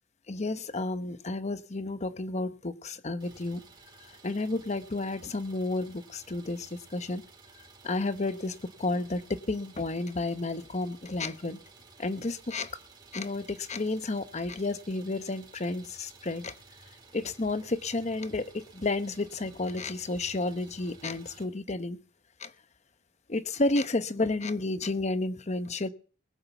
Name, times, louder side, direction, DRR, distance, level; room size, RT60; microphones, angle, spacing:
voice 1, 0.3-3.6 4.2-7.2 7.8-11.6 12.0-12.7 13.1-16.5 17.1-22.0 22.4-22.5 23.3-25.9, left 2 dB, 35° left, 12 dB, 0.9 m, -31 dB
Idling, 3.2-21.5, right 4 dB, 25° right, 3.9 m, -55 dB
20.5 x 7.4 x 7.1 m, 0.41 s
head